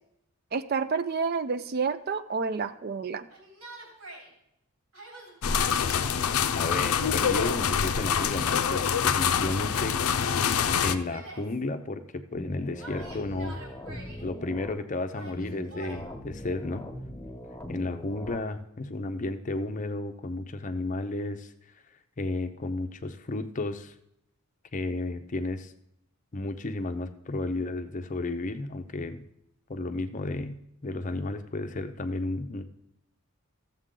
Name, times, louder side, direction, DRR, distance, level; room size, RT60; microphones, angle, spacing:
voice 1, 0.5-3.3, right 5 dB, 45° right, 12 dB, 0.4 m, -29 dB
Yell, 3.3-4.3 4.9-6.3 7.1-8.5 9.4-9.9 10.2-11.6 12.8-14.2 15.1-16.0, equal, 80° right, 3.3 m, -45 dB
sound 1, 5.4-10.9, left 7 dB, 80° left, 0.5 m, -25 dB
voice 2, 6.5-10.0 10.8-13.6 13.9-16.8 17.7-21.5 22.2-23.9 24.7-25.7 26.3-29.3 29.7-32.6, left 2 dB, 35° left, 9 dB, 0.6 m, -33 dB
sound 2, 12.4-14.7 15.3-18.4, left 1 dB, 10° left, 1.3 m, -41 dB
14.5 x 7.3 x 3.8 m, 0.78 s
head